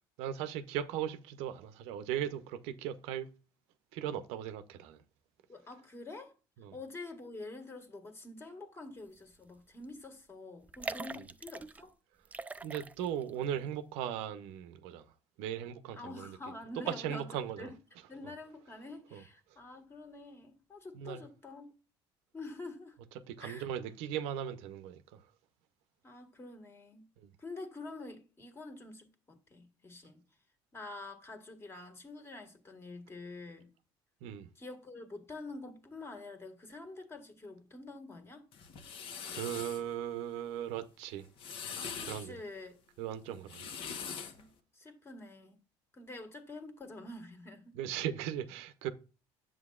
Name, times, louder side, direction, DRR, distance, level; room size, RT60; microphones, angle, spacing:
voice 1, 0.2-3.3 3.9-5.0 6.6-6.8 12.6-15.1 15.4-16.4 16.9-17.7 19.1-19.2 20.9-21.2 23.3-25.2 27.2-27.3 34.2-34.5 39.3-41.2 42.0-42.4 43.0-43.7 47.8-48.9, right 10 dB, 85° right, 0.7 m, -38 dB
voice 2, 5.5-6.3 6.7-11.9 15.9-17.3 17.6-17.8 18.1-21.7 22.3-23.0 23.4-23.7 26.0-27.1 27.4-30.2 30.7-33.7 34.5-38.4 42.0-42.8 44.3-45.6 45.9-47.8, left 2 dB, 25° left, 1.6 m, -47 dB
sound 1, 9.3-9.6 9.8-9.9 10.6-11.8 12.2-13.3 13.7-13.8, right 3 dB, 15° right, 0.4 m, -42 dB
sound 2, 38.5-39.8 41.2-42.3 43.3-44.4, left 6 dB, 60° left, 1.1 m, -42 dB
9.6 x 7.5 x 2.4 m
cardioid pair, 115°, 10 cm